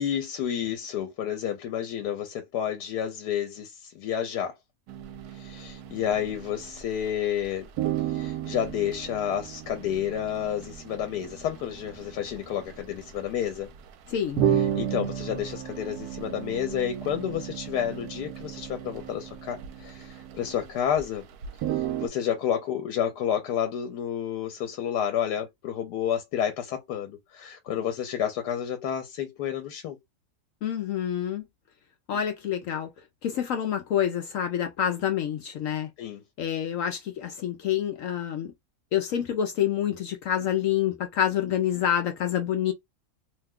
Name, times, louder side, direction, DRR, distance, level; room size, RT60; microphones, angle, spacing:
voice 1, 0.0-4.5 5.3-7.7 8.1-13.7 14.5-21.2 21.7-30.0 32.1-32.2 36.0-36.2, left 9 dB, 90° left, 1.2 m, -30 dB
sound 1, 4.9-7.1 7.4-7.5 7.8-21.0 21.3-22.1, right 10 dB, 75° right, 1.1 m, -33 dB
voice 2, 14.1-14.4 30.6-31.4 32.1-32.9 33.2-35.9 36.4-38.5 38.9-42.7, left 10 dB, 70° left, 0.8 m, -27 dB
2.8 x 2.2 x 3.5 m
omnidirectional pair, 1.7 m